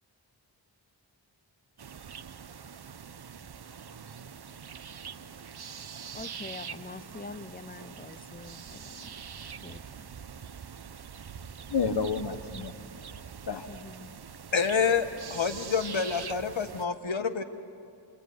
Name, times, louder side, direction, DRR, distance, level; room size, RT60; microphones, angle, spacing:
sound 1, 1.8-16.8, right 7 dB, 55° right, 0.8 m, -44 dB
voice 1, 6.1-9.1 9.6-10.1 13.7-14.1, left 3 dB, 20° left, 13 dB, 0.7 m, -45 dB
voice 2, 11.7-12.8 13.5-13.7 17.2-17.4, left 5 dB, 60° left, 7 dB, 1.0 m, -30 dB
voice 3, 14.5-17.4, left 6 dB, 80° left, 7 dB, 1.5 m, -28 dB
27.5 x 21.5 x 9.4 m, 2.5 s
wide cardioid pair, 65°, 46 cm